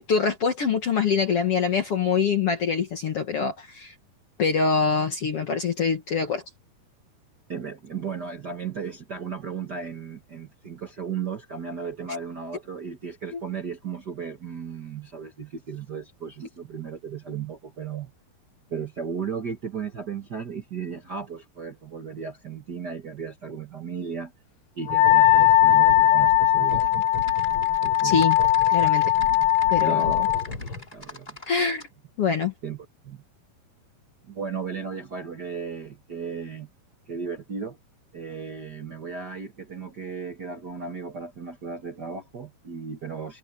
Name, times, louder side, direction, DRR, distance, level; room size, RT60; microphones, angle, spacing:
voice 1, 0.0-3.9 4.4-6.4 13.3-13.4 28.0-28.4 28.7-29.1 29.7-30.2 31.5-31.8 32.2-32.5, left 6 dB, 50° left, 1.9 m, -24 dB
voice 2, 7.5-18.1 18.7-24.3 24.7-27.0 27.8-28.3 29.8-30.3 30.9-31.4 32.6-33.2 34.2-36.7 37.1-37.8 38.1-43.4, right 6 dB, 60° right, 1.0 m, -35 dB
sound 1, 24.8-31.0, left 3 dB, 35° left, 4.6 m, -37 dB
Wind instrument woodwind instrument, 24.9-30.4, left 13 dB, 70° left, 2.3 m, -19 dB
Typing, 26.7-31.9, left 2 dB, 10° left, 3.5 m, -44 dB
omnidirectional pair, 4.4 m